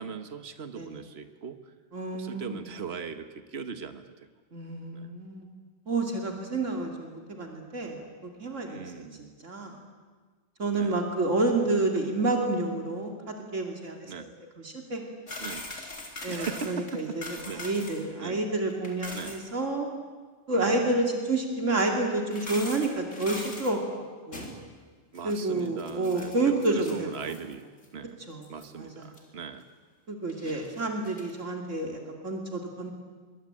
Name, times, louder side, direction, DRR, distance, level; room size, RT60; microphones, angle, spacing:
voice 1, 0.0-1.6 2.1-4.0 4.9-5.1 8.6-9.4 10.7-11.0 14.1-14.3 15.4-15.6 16.3-17.1 17.4-17.6 18.2-18.4 19.1-19.4 20.5-21.0 25.1-27.6 27.9-28.2 28.5-29.6 30.4-30.6, right 6 dB, 55° right, 9 dB, 1.6 m, -39 dB
voice 2, 1.9-2.6 4.5-5.5 5.9-8.1 8.4-9.8 10.6-14.3 14.6-15.0 16.2-19.9 20.5-24.5 25.2-27.3 28.3-28.5 28.7-29.1 30.1-32.9, right 2 dB, 80° right, 2 dB, 3.0 m, -29 dB
sound 1, 15.3-18.0 18.3-18.4 18.7-19.4 21.3-21.4 22.2-23.7 24.3-24.6 25.1-27.5 27.8-27.9 28.4-28.6 29.1-29.2 30.3-31.3, left 2 dB, 80° left, 4.5 m, -41 dB
25.0 x 22.5 x 9.0 m, 1.5 s
omnidirectional pair, 1.3 m